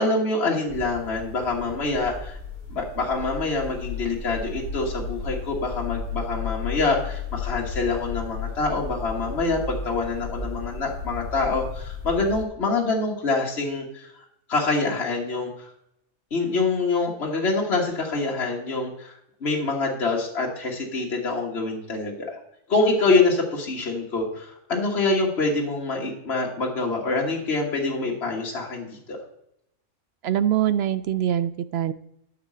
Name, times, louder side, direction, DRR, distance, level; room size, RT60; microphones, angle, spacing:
voice 1, 0.0-2.4 2.7-14.1 14.5-15.7 16.3-19.1 19.4-22.4 22.7-29.2, left 3 dB, 55° left, -2 dB, 1.8 m, -25 dB
sound 1, 0.7-12.4, left 4 dB, 45° right, 2.8 m, -34 dB
voice 2, 30.2-31.9, right 10 dB, 65° right, 13 dB, 0.7 m, -23 dB
12.0 x 4.9 x 7.4 m, 0.81 s
omnidirectional pair, 1.4 m